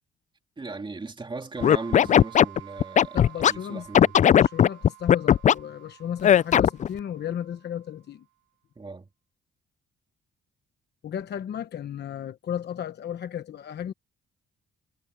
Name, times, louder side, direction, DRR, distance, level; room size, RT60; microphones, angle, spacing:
voice 1, 0.6-4.2 8.8-9.1, right 3 dB, 25° right, 2.6 m, -38 dB
Scratching (performance technique), 1.6-3.5 3.9-5.5 6.2-6.9, left 9 dB, 40° left, 0.4 m, -17 dB
sound 1, 1.6-8.1, right 22 dB, 70° right, 3.5 m, -49 dB
voice 2, 3.1-3.9 4.3-8.2 11.0-13.9, left 9 dB, 55° left, 1.1 m, -34 dB
cardioid pair, 90°, 20 cm